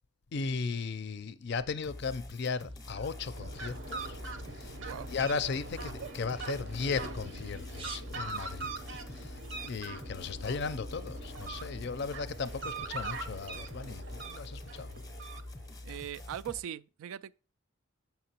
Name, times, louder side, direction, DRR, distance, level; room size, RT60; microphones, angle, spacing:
voice 1, 0.3-4.2 4.5-4.7 5.1-8.7 9.1-9.4 9.6-15.0, left 5 dB, 55° left, 0.4 m, -36 dB
sound 1, 1.8-16.6, left 1 dB, 15° left, 0.7 m, -46 dB
sound 2, 2.6-8.0, right 4 dB, 25° right, 0.5 m, -55 dB
Fowl, 2.9-15.9, right 3 dB, 60° right, 0.8 m, -42 dB
voice 2, 4.7-5.1 15.8-17.4, right 10 dB, 85° right, 0.3 m, -40 dB
6.6 x 5.8 x 2.9 m
head